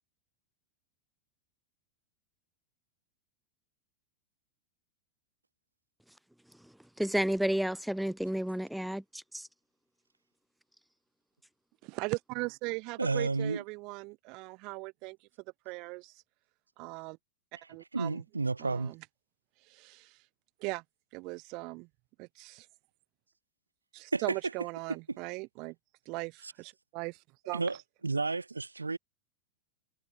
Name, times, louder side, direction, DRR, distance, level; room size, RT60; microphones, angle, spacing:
voice 1, 7.0-9.5, equal, ahead, 3.9 m, -31 dB
voice 2, 11.8-15.3 15.7-16.2 16.8-17.2 17.7-18.2 18.6-19.0 19.6-20.3 20.6-20.8 21.1-21.9 22.2-22.7 23.9-25.8 26.1-27.8, right 26 dB, 40° right, 1.7 m, -39 dB
voice 3, 13.0-13.6 17.9-18.9 24.1-24.2 27.5-27.8 28.0-29.0, right 3 dB, 80° right, 1.9 m, -31 dB
figure-of-eight pair, 90°, 0 cm